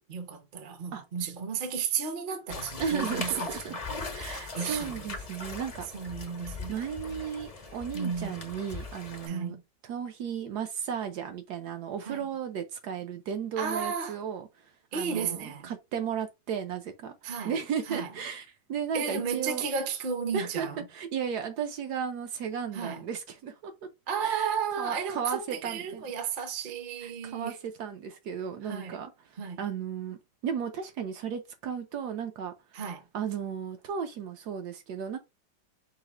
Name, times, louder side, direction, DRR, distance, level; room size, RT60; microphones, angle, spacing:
voice 1, 0.0-3.8 4.5-5.1 5.9-6.8 7.9-8.4 9.3-9.6 12.1-12.3 13.6-14.2 14.9-15.7 17.2-17.6 17.9-18.1 18.9-20.8 22.7-23.0 24.1-27.6 28.7-29.0 29.4-29.6 32.7-33.0, right 6 dB, 50° right, 0.6 m, -33 dB
sound 1, 2.5-9.3, left 3 dB, 50° left, 0.4 m, -39 dB
voice 2, 2.8-3.7 4.1-5.9 6.7-9.6 9.8-19.7 20.3-23.7 24.2-26.0 27.0-32.5 33.1-35.2, right 7 dB, 70° right, 1.1 m, -35 dB
4.7 x 2.0 x 4.2 m
omnidirectional pair, 1.9 m